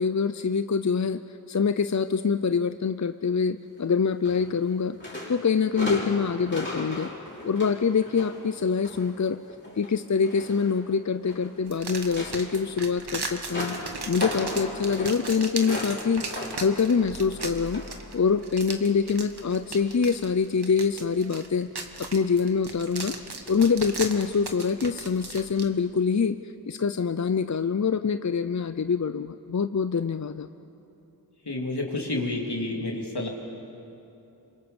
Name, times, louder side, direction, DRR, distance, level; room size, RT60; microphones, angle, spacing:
voice 1, 0.0-5.0 5.3-7.1 7.4-9.4 9.8-13.8 14.1-17.8 18.1-21.7 22.0-23.2 23.5-26.4 26.7-30.5, left 5 dB, 45° left, 11 dB, 0.6 m, -25 dB
sound 1, 4.2-4.7 5.0-9.1 9.5-11.6 12.0-18.1 18.4-18.6 19.7-19.8 20.4-20.5, left 1 dB, 30° left, 5.4 m, -37 dB
sound 2, 11.7-25.7, right 3 dB, 80° right, 1.7 m, -38 dB
voice 2, 31.4-33.3, left 2 dB, 85° left, -1 dB, 3.4 m, -29 dB
27.0 x 24.5 x 7.1 m, 2.8 s
wide cardioid pair, 40°, 38 cm